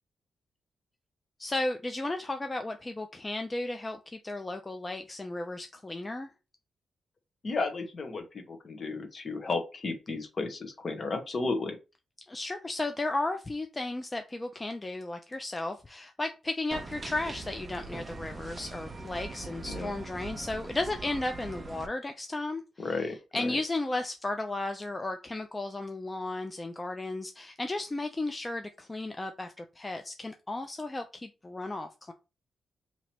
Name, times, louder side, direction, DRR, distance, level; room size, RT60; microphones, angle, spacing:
voice 1, 1.4-6.3 12.3-22.9 23.3-32.1, left 2 dB, 25° left, 6 dB, 0.4 m, -34 dB
voice 2, 7.4-11.8 19.6-19.9 22.8-23.6, left 3 dB, 50° left, 5 dB, 1.0 m, -33 dB
sound 1, 16.7-21.9, right 3 dB, 30° right, 0.7 m, -42 dB
3.0 x 2.8 x 4.2 m, 0.29 s
cardioid pair, 70°, 0 cm